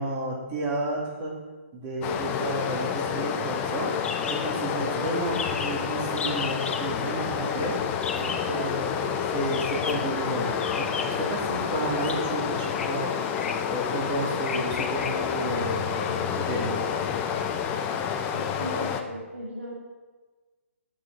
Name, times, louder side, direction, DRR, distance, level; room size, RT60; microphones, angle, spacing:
voice 1, 0.0-1.4 1.7-3.9 4.2-7.8 8.1-13.3 13.7-16.8, right 1 dB, 25° right, -1 dB, 2.2 m, -31 dB
Stream, 2.0-19.0, left 7 dB, 25° left, 0.6 m, -29 dB
sound 1, 4.0-4.4 4.7-4.8 5.0-5.1 5.3-5.8 6.2-6.8 8.0-8.5 9.5-10.1 10.6-11.3 12.0-12.2 12.7-12.9 13.3-13.7 14.4-15.1, left 5 dB, 65° left, 1.1 m, -34 dB
voice 2, 18.3-19.7, right 1 dB, 85° right, -6 dB, 2.4 m, -37 dB
7.2 x 6.5 x 6.2 m, 1.3 s
hypercardioid pair, 140°, 7 cm